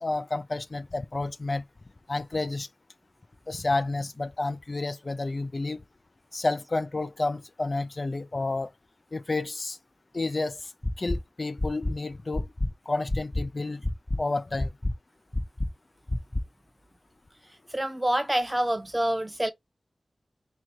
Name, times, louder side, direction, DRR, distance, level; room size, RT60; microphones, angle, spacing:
voice 1, 0.0-1.6 2.1-2.7 3.5-5.8 6.3-8.7 9.1-9.8 10.1-10.6 11.0-12.5 12.9-13.8 14.2-14.7, left 2 dB, 50° left, 0.4 m, -30 dB
sound 1, 10.8-11.2 11.6-11.9 12.3-12.7 13.1-13.4 13.8-14.2 14.6-14.9 15.3-15.7 16.1-16.4, left 1 dB, 25° left, 0.8 m, -27 dB
voice 2, 17.7-19.5, right 1 dB, 20° right, 0.8 m, -26 dB
3.7 x 2.8 x 4.5 m
cardioid pair, 50°, 0 cm